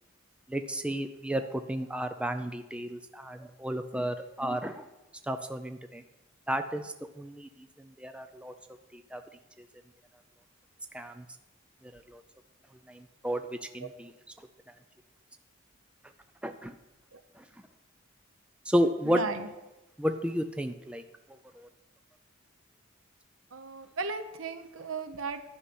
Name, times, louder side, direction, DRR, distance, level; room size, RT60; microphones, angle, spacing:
voice 1, 0.5-4.9 5.3-6.0 6.5-7.5 7.8-8.5 8.9-9.2 10.9-11.2 11.9-12.2 12.9-13.4 13.7-14.1 16.4-16.7 17.4-17.5 18.7-19.2 20.0-21.0 21.6-21.7, equal, 5° right, 7 dB, 0.4 m, -32 dB
voice 2, 19.0-19.5 23.5-25.4, right 4 dB, 80° right, 9 dB, 0.9 m, -36 dB
11.0 x 5.7 x 8.3 m, 1.0 s
head